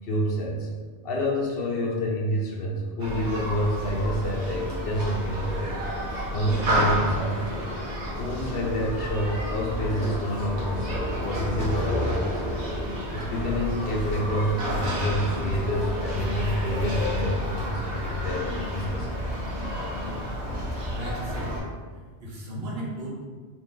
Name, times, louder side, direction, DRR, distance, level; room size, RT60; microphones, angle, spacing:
voice 1, 0.0-0.7 1.0-5.8 6.3-7.7 8.2-19.3, equal, 65° left, -2 dB, 0.7 m, -28 dB
Human group actions, 3.0-21.6, equal, 80° right, 1.2 m, -30 dB
voice 2, 20.9-21.6 21.9-23.1, right 1 dB, 65° right, -4 dB, 1.0 m, -36 dB
2.9 x 2.5 x 3.7 m, 1.5 s
omnidirectional pair, 1.2 m